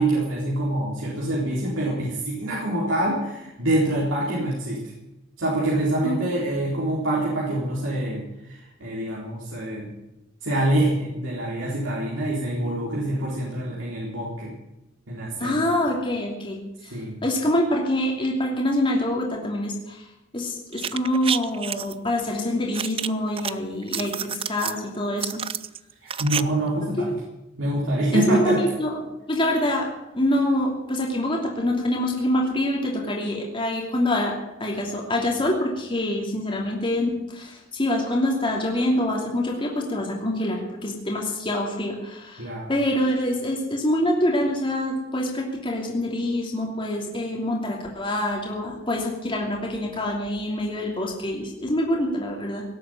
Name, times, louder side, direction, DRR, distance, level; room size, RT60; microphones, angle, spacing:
voice 1, 0.0-4.8 5.4-9.9 10.4-14.5 15.1-15.6 16.9-17.1 26.0-27.1 27.6-28.6 42.4-42.7, right 1 dB, 85° right, -5 dB, 4.2 m, -25 dB
voice 2, 15.4-16.6 16.8-17.0 17.2-20.0 20.3-25.4 27.0-27.1 28.1-29.9 30.1-34.3 34.6-52.6, left 1 dB, 25° left, -1 dB, 2.8 m, -25 dB
sound 1, 20.7-21.9 22.7-23.5 23.8-24.8 25.2-26.4 26.7-26.8, right 8 dB, 30° right, 0.5 m, -29 dB
18.0 x 8.4 x 9.0 m, 0.94 s
head